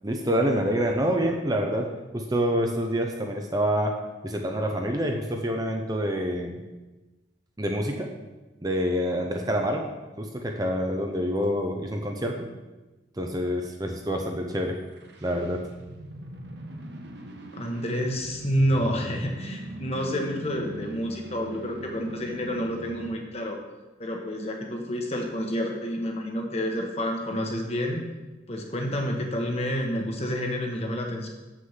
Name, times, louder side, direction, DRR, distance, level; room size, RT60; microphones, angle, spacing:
voice 1, 0.0-1.9 2.1-3.9 4.2-6.6 7.6-8.1 8.6-9.9 10.2-12.5 13.2-14.8 15.2-15.7, equal, 20° right, 2 dB, 0.7 m, -27 dB
sound 1, 14.7-23.4, right 1 dB, 70° right, 1.0 m, -41 dB
voice 2, 17.5-23.6 24.0-28.0 28.5-31.3, equal, 35° left, 2 dB, 1.3 m, -29 dB
7.6 x 6.3 x 5.7 m, 1.1 s
head